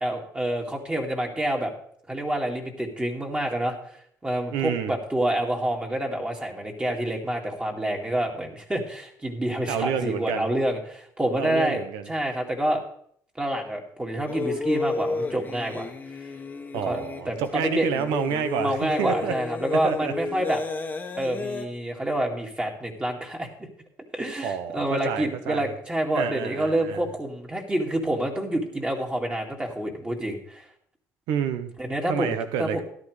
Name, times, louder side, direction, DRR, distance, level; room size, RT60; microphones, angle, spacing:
voice 1, 0.0-1.7 2.1-3.8 4.2-12.8 13.4-15.9 16.9-17.0 17.3-17.9 18.6-20.6 21.2-23.7 24.1-30.6 31.8-32.8, right 1 dB, 15° right, 1 dB, 2.2 m, -27 dB
voice 2, 4.5-5.0 9.7-10.5 11.4-12.1 16.7-19.3 19.8-20.1 24.4-25.7 26.1-27.0 31.3-31.7 32.1-32.8, right 7 dB, 85° right, 11 dB, 1.0 m, -29 dB
sound 1, 14.3-21.7, left 3 dB, 25° left, 1.2 m, -32 dB
13.5 x 11.0 x 3.3 m, 0.63 s
cardioid pair, 100°, 7 cm